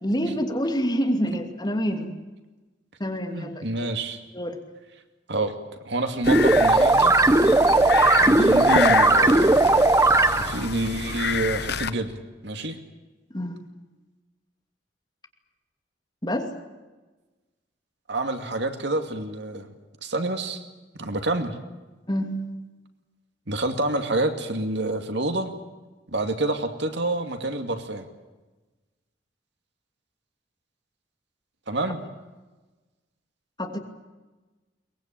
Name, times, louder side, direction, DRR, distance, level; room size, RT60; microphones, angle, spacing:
voice 1, 0.0-2.1 3.0-3.9 4.3-4.6 8.2-8.5 13.3-13.6 16.2-16.5 22.1-22.5 33.6-33.8, equal, 25° left, 4 dB, 2.7 m, -27 dB
voice 2, 3.3-4.2 5.3-5.5 5.9-7.1 8.2-9.6 10.3-12.8 18.1-19.7 20.0-20.6 21.0-21.6 23.5-25.5 26.1-28.1 31.7-32.0, right 2 dB, 65° right, 6 dB, 2.4 m, -28 dB
sound 1, 6.2-11.9, left 6 dB, 60° left, 1.0 m, -29 dB
sound 2, 6.3-10.7, right 2 dB, 15° right, 0.8 m, -17 dB
23.0 x 20.5 x 9.0 m, 1.2 s
head